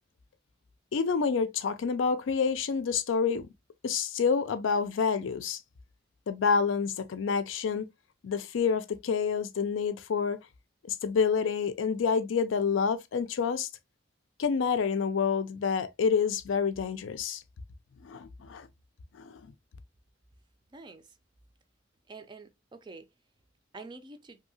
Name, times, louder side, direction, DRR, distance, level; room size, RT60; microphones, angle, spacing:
voice 1, 0.9-3.5 3.8-5.6 6.3-7.9 8.2-10.4 10.8-13.7 14.4-17.4 18.0-18.7 19.1-19.5, left 5 dB, 85° left, 0.4 m, -28 dB
voice 2, 20.7-21.1 22.1-23.1 23.7-24.4, right 3 dB, 25° right, 0.4 m, -47 dB
2.7 x 2.7 x 2.6 m
head